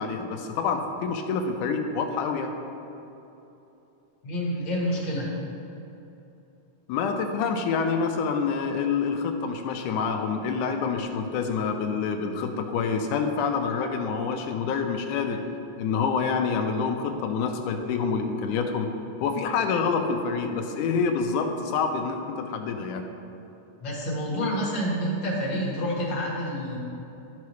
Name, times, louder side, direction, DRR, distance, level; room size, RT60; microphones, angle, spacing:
voice 1, 0.0-2.5 6.9-15.4 15.8-18.9 19.2-23.0, left 5 dB, 80° left, 5 dB, 2.0 m, -27 dB
voice 2, 4.2-5.3 23.8-26.8, equal, 45° left, -4 dB, 1.8 m, -28 dB
12.5 x 5.8 x 3.1 m, 2.9 s
omnidirectional pair, 3.7 m